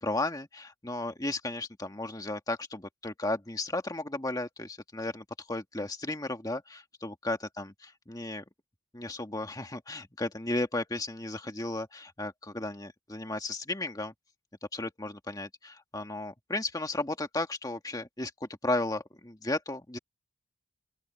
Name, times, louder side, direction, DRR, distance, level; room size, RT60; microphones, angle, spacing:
voice 1, 0.0-8.4 8.9-14.1 14.7-20.0, left 2 dB, 20° left, 1.8 m, -34 dB
open air
head